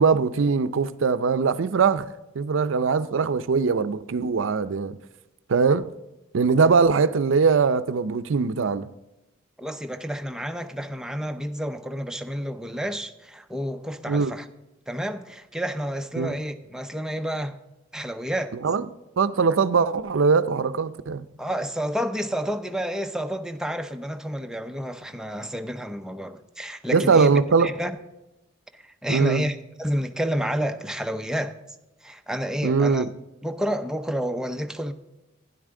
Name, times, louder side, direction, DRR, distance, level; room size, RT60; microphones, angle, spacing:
voice 1, 0.0-2.1 2.3-5.0 5.5-5.9 6.3-8.9 14.1-14.3 16.2-16.3 18.6-18.9 19.2-21.2 26.9-27.7 29.1-29.5 32.6-33.1, right 5 dB, 75° right, 0.5 m, -21 dB
voice 2, 9.6-14.5 14.9-17.5 17.9-18.6 21.4-27.3 27.6-27.9 28.7-31.5 32.0-33.0 33.4-34.9, equal, 5° right, 0.6 m, -30 dB
12.5 x 10.5 x 3.7 m
head